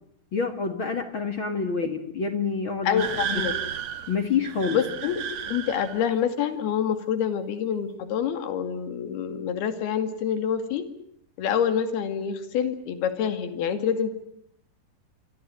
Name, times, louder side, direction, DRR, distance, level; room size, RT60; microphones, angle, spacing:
voice 1, 0.3-3.0 3.3-3.5 4.1-4.8, left 5 dB, 45° left, 8 dB, 1.9 m, -27 dB
voice 2, 2.8-3.5 4.7-5.2 5.5-10.9 11.4-14.1, left 8 dB, 75° left, 10 dB, 4.2 m, -26 dB
sound 1, 3.0-6.1, right 8 dB, 50° right, 2.5 m, -33 dB
26.0 x 25.0 x 7.9 m, 0.68 s
omnidirectional pair, 4.5 m